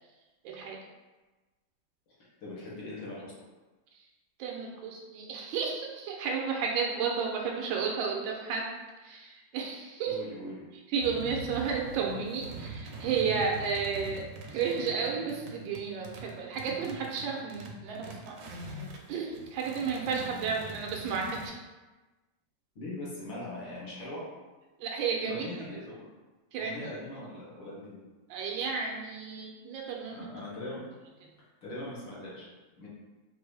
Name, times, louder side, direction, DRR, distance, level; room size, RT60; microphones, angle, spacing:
voice 1, 0.4-0.8 3.9-4.1 4.4-8.7 9.0-10.2 10.9-14.2 14.5-18.8 19.1-21.5 24.8-25.4 26.5-26.8 28.3-30.3 31.2-31.3, right 5 dB, 90° right, -1 dB, 1.4 m, -32 dB
voice 2, 2.4-3.3 10.1-10.6 22.8-24.2 25.3-26.1 26.6-28.0 30.1-30.8 31.6-32.9, left 1 dB, 75° left, -6 dB, 1.9 m, -41 dB
sound 1, 11.0-19.0 19.3-21.5, right 2 dB, 70° right, 1.2 m, -43 dB
4.7 x 2.6 x 3.2 m, 1.2 s
omnidirectional pair, 2.1 m